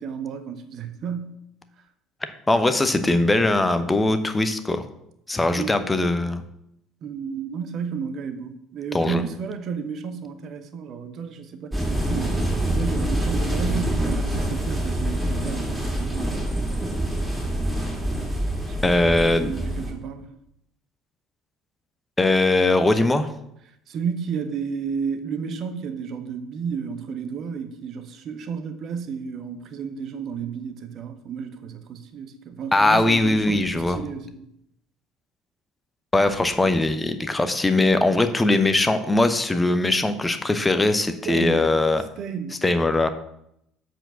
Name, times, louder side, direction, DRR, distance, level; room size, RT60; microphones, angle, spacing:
voice 1, 0.0-1.4 5.5-5.7 7.0-16.4 18.7-20.3 23.9-34.5 41.2-41.7 42.2-42.6, right 6 dB, 45° right, 9 dB, 0.9 m, -32 dB
voice 2, 2.5-4.8 5.3-6.4 8.9-9.2 18.8-19.5 22.2-23.3 32.7-34.0 36.1-42.0 42.6-43.1, left 2 dB, 15° left, 10 dB, 0.8 m, -20 dB
sound 1, 11.7-19.9, right 1 dB, 5° right, 2.3 m, -26 dB
7.8 x 4.6 x 6.0 m, 0.77 s
figure-of-eight pair, 55°, 0 cm